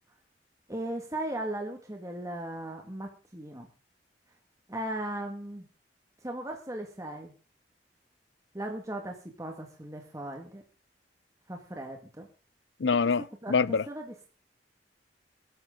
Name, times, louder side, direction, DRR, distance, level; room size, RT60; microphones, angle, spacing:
voice 1, 0.7-3.7 4.7-5.7 6.2-7.3 8.5-10.6 11.5-12.3 13.4-13.6 13.9-14.3, right 1 dB, 20° right, 1.9 m, -37 dB
voice 2, 12.8-13.9, left 5 dB, 90° left, 0.6 m, -25 dB
21.5 x 11.0 x 3.8 m
head